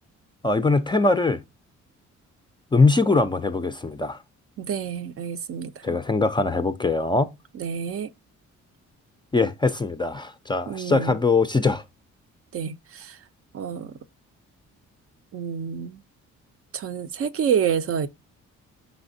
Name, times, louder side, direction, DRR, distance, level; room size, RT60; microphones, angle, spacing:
voice 1, 0.4-1.4 2.7-4.2 5.8-7.3 9.3-11.8, left 3 dB, 15° left, 0.4 m, -22 dB
voice 2, 4.6-6.0 7.6-8.1 10.7-11.2 12.5-13.2 13.5-13.9 15.3-16.0 16.7-18.1, right 7 dB, 50° right, 0.5 m, -28 dB
5.1 x 3.2 x 2.6 m
cardioid pair, 90°, 30 cm